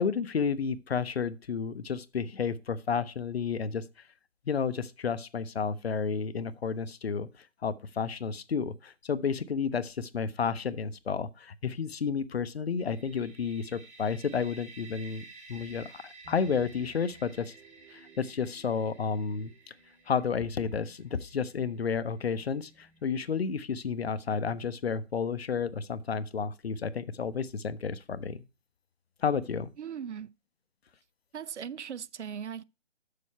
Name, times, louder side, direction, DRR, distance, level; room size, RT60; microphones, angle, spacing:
voice 1, 0.0-3.8 4.5-7.3 7.6-15.2 15.5-17.5 17.9-19.5 20.1-28.4 29.2-29.7, left 6 dB, 55° left, 0.7 m, -31 dB
sound 1, 12.8-22.5, right 3 dB, 15° right, 0.7 m, -53 dB
sound 2, 16.2-25.0, right 3 dB, 40° right, 2.4 m, -60 dB
voice 2, 29.8-30.3 31.3-32.6, right 8 dB, 65° right, 0.5 m, -38 dB
6.8 x 6.6 x 5.3 m
figure-of-eight pair, 145°, 37 cm